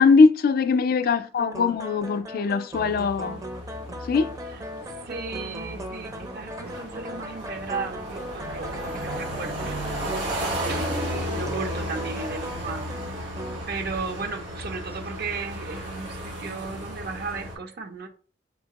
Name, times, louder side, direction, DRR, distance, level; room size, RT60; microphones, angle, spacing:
voice 1, 0.0-3.4 4.1-4.3, left 4 dB, 55° left, 0.3 m, -20 dB
sound 1, 1.4-13.6, equal, 20° right, 0.5 m, -38 dB
sound 2, 2.7-17.6, equal, 85° right, 1.9 m, -34 dB
voice 2, 5.0-9.8 10.4-12.9 13.2-13.3 13.7-18.1, right 4 dB, 60° right, 0.7 m, -35 dB
4.2 x 2.8 x 2.9 m
head